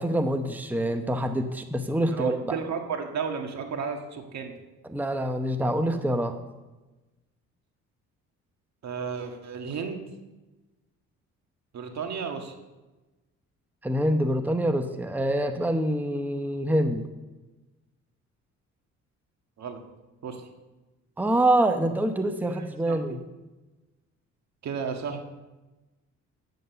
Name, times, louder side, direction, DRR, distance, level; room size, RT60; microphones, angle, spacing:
voice 1, 0.0-2.5 4.9-6.4 13.8-17.0 21.2-23.2, right 1 dB, 5° right, 7 dB, 0.9 m, -25 dB
voice 2, 2.1-4.5 8.8-10.0 11.7-12.5 19.6-19.8 20.2-20.5 22.4-23.2 24.6-25.2, right 6 dB, 65° right, 4 dB, 1.7 m, -33 dB
9.3 x 8.0 x 6.8 m, 1.1 s
cardioid pair, 90°, 30 cm